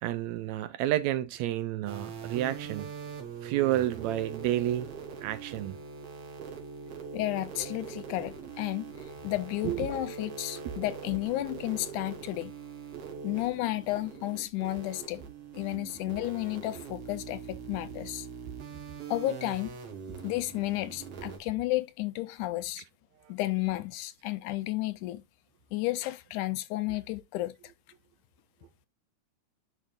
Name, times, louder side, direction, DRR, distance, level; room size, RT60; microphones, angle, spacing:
voice 1, 0.0-2.9 3.4-4.9 5.2-5.8 9.6-9.9 10.5-10.6, right 13 dB, 80° right, 1.7 m, -30 dB
sound 1, 1.9-21.4, right 6 dB, 55° right, 2.3 m, -42 dB
voice 2, 7.1-8.9 9.2-12.5 13.2-15.2 15.5-18.3 19.1-19.8 20.2-22.8 23.3-25.2 25.7-27.5, left 16 dB, 90° left, 2.2 m, -32 dB
10.5 x 3.7 x 2.4 m
omnidirectional pair, 3.5 m